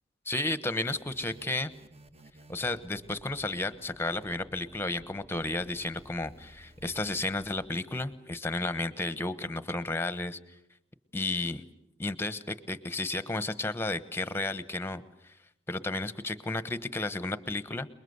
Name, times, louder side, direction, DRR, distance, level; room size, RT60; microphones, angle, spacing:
voice 1, 0.2-1.7 2.5-10.4 11.1-11.6 12.0-15.3 15.7-17.9, left 2 dB, 10° left, 13 dB, 1.1 m, -33 dB
sound 1, 0.8-7.7, right 1 dB, 30° right, 1.3 m, -54 dB
28.5 x 21.0 x 8.0 m, 0.81 s
head